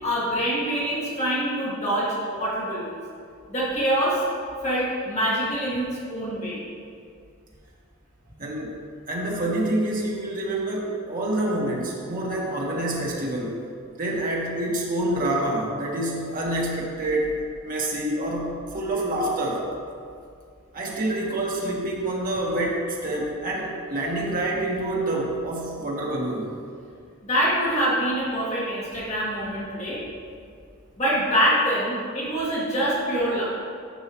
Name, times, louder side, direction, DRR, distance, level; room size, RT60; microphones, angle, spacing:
voice 1, 0.0-2.9 3.5-4.2 4.6-6.6 27.2-30.0 31.0-33.4, equal, 30° left, -7 dB, 1.7 m, -25 dB
voice 2, 8.4-8.8 9.1-13.6 14.0-19.7 20.7-26.5, right 1 dB, 40° right, -3 dB, 1.3 m, -27 dB
10.0 x 5.5 x 2.9 m, 2.3 s
head